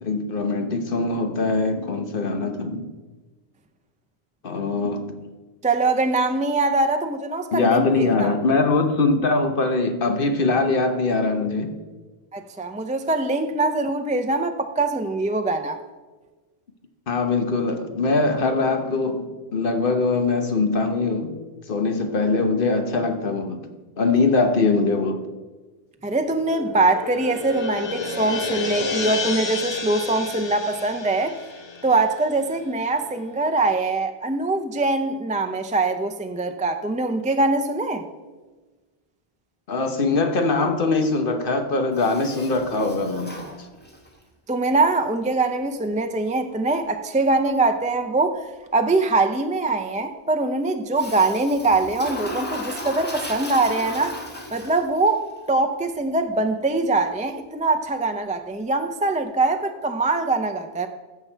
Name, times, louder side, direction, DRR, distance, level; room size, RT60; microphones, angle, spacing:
voice 1, 0.0-2.9 4.4-5.0 7.5-11.8 17.1-21.3 21.7-23.6 24.0-25.2 39.7-43.4, left 3 dB, 60° left, 6 dB, 1.2 m, -22 dB
voice 2, 5.6-8.3 12.3-15.8 26.0-31.4 31.8-38.0 44.5-48.5 48.7-54.2 54.5-55.2 55.5-60.9, right 2 dB, 10° right, 7 dB, 0.3 m, -23 dB
sound 1, 26.2-32.7, left 4 dB, 30° left, 0.7 m, -31 dB
Toilet flush, 41.9-44.2 50.9-55.1, left 1 dB, 10° left, 1.4 m, -35 dB
14.5 x 5.9 x 4.5 m, 1.3 s
omnidirectional pair, 1.0 m